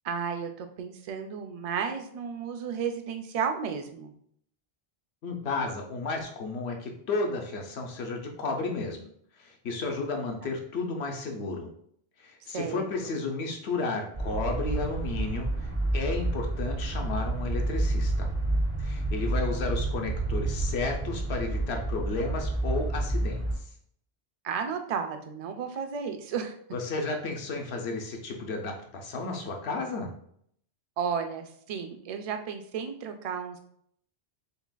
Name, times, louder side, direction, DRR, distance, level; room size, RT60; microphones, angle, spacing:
voice 1, 0.0-4.1 10.4-10.5 12.5-12.8 24.4-26.6 31.0-33.6, right 6 dB, 55° right, 6 dB, 0.4 m, -33 dB
voice 2, 5.2-9.1 9.4-11.7 12.2-18.3 18.8-23.4 26.7-30.1, left 3 dB, 75° left, 2 dB, 1.0 m, -33 dB
sound 1, 14.1-23.5, right 2 dB, 30° right, 0.8 m, -29 dB
6.8 x 2.4 x 2.2 m, 0.66 s
omnidirectional pair, 1.1 m